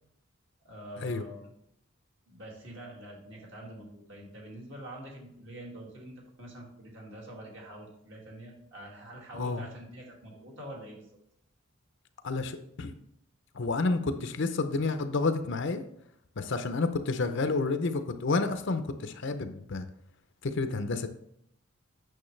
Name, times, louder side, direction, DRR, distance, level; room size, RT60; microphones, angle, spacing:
voice 1, 0.6-1.5 2.3-11.1, right 1 dB, 55° right, -2 dB, 2.1 m, -46 dB
voice 2, 9.3-9.6 12.2-12.9 13.5-15.8 16.4-19.9 20.4-21.1, left 3 dB, 55° left, 9 dB, 0.6 m, -30 dB
8.7 x 6.4 x 3.2 m, 0.73 s
head